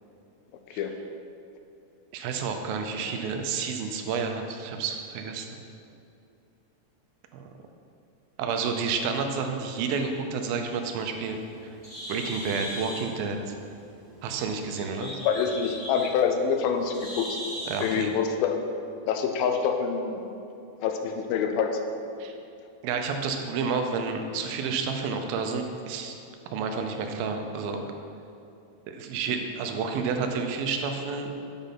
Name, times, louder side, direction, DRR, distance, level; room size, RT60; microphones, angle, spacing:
voice 1, 2.1-5.6 7.3-7.5 8.4-11.7 12.1-13.4 14.2-15.1 17.7-18.1 22.2-22.3 22.8-26.2 26.5-27.9 28.9-31.3, right 5 dB, 85° right, 4 dB, 2.5 m, -30 dB
Bird, 10.8-18.1, equal, 25° left, 1.2 m, -39 dB
voice 2, 15.0-17.4 17.8-18.6 19.1-20.2 20.8-21.7 29.3-29.4, left 6 dB, 85° left, 5 dB, 2.4 m, -26 dB
8.1 x 5.2 x 5.7 m, 2.7 s
omnidirectional pair, 4.2 m